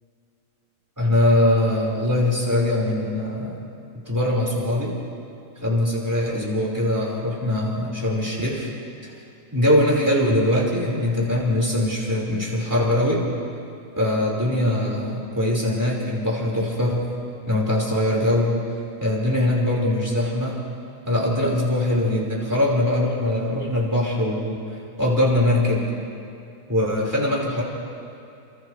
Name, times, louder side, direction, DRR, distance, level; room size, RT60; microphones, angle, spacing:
voice 1, 1.0-3.7 4.0-4.9 5.6-8.7 9.0-9.1 9.5-13.2 14.0-17.0 17.5-18.6 19.0-20.6 21.0-24.6 25.0-25.9 26.7-27.6, left 1 dB, 15° right, -5 dB, 5.0 m, -22 dB
29.5 x 27.0 x 3.4 m, 2.7 s
omnidirectional pair, 1.4 m